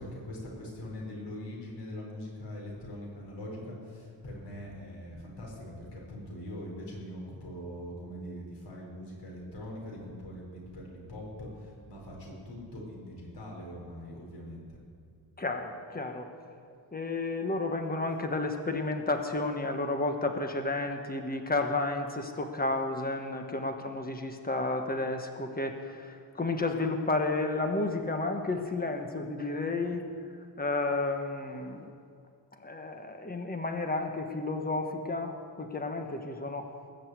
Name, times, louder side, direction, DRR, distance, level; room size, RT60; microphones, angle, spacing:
voice 1, 0.0-14.8, left 1 dB, 75° left, -3 dB, 4.8 m, -42 dB
voice 2, 15.4-16.3 16.9-30.0 30.6-31.9 32.6-36.7, left 2 dB, 20° left, 5 dB, 1.3 m, -32 dB
20.0 x 6.7 x 8.1 m, 2.3 s
wide cardioid pair, 135°, 43 cm